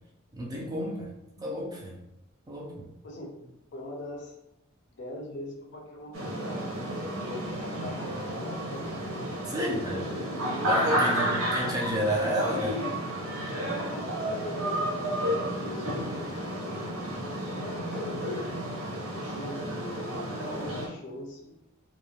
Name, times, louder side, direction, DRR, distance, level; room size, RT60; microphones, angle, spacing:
voice 1, 0.3-1.1 1.4-2.0 2.5-2.9 9.5-10.1 10.6-12.8, equal, 20° right, -2 dB, 0.4 m, -31 dB
voice 2, 3.0-4.3 4.9-9.0 9.6-10.2 11.0-11.3 13.5-14.9 15.2-16.9 17.6-18.2 19.1-19.7 20.4-21.6, left 1 dB, 55° left, 0 dB, 0.5 m, -42 dB
sound 1, 6.1-20.9, equal, 80° right, 0.6 m, -31 dB
3.0 x 2.1 x 2.3 m, 0.86 s
head